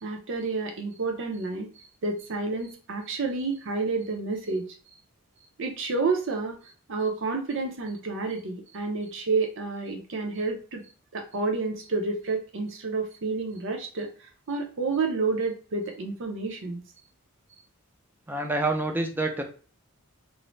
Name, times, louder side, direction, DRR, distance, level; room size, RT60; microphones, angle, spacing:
voice 1, 0.0-4.7 5.6-10.8 11.1-14.1 14.5-16.8, right 3 dB, 60° right, 3 dB, 0.6 m, -30 dB
voice 2, 18.3-19.4, right 2 dB, 10° right, 3 dB, 0.4 m, -27 dB
2.6 x 2.0 x 3.1 m, 0.38 s
head